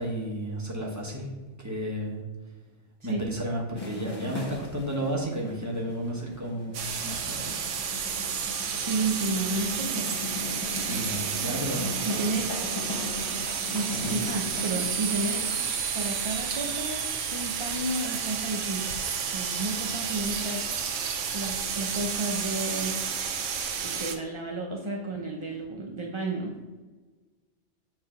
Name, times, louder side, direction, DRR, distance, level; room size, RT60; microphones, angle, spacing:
voice 1, 0.0-2.2 3.0-7.6 10.9-12.0 13.9-14.2 25.5-25.6, equal, 15° right, -2 dB, 1.2 m, -33 dB
sound 1, 3.8-14.8, left 1 dB, 20° left, 1.1 m, -38 dB
sound 2, 6.7-24.2, right 7 dB, 85° right, 1.1 m, -31 dB
voice 2, 8.8-10.5 12.1-12.7 13.7-15.5 15.9-19.0 19.3-20.6 21.3-22.9 23.8-26.5, right 2 dB, 35° right, 0 dB, 0.5 m, -32 dB
7.7 x 3.4 x 5.6 m, 1.3 s
omnidirectional pair, 1.2 m